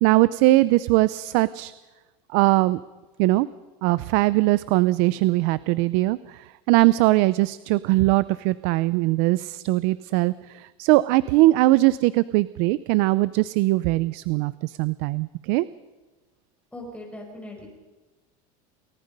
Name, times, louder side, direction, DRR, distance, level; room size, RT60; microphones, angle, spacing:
voice 1, 0.0-1.7 2.3-2.8 3.2-3.5 3.8-15.7, right 19 dB, 60° right, 17 dB, 0.6 m, -21 dB
voice 2, 16.7-17.7, left 1 dB, 5° left, 1 dB, 4.9 m, -39 dB
29.5 x 18.5 x 5.3 m, 1.2 s
supercardioid pair, 150°, 19 cm